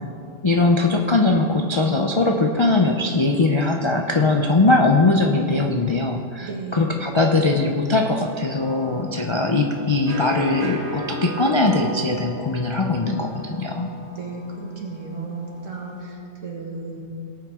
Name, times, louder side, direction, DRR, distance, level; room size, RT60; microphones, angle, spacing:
voice 1, 0.4-13.9, left 2 dB, 35° left, 1 dB, 0.4 m, -20 dB
voice 2, 6.4-6.9 14.1-17.0, right 3 dB, 65° right, -2 dB, 2.1 m, -34 dB
sound 1, 8.6-16.0, equal, 40° right, 1.5 m, -36 dB
18.5 x 8.8 x 3.6 m, 2.4 s
omnidirectional pair, 1.4 m